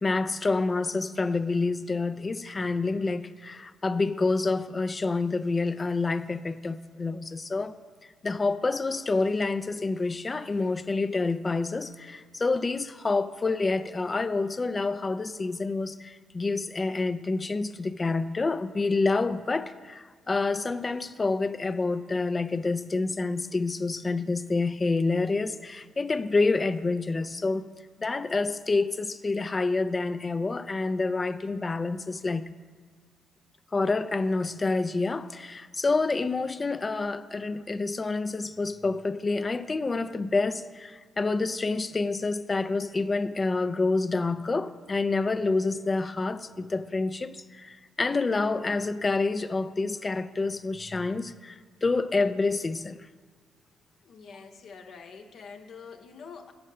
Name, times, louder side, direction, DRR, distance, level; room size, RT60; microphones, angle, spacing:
voice 1, 0.0-7.7 8.2-27.7 28.0-32.5 33.7-53.1, left 3 dB, 25° left, 0.3 m, -28 dB
voice 2, 54.0-56.5, left 5 dB, 60° left, 0.8 m, -46 dB
7.8 x 5.4 x 7.5 m
cardioid pair, 90°, 0 cm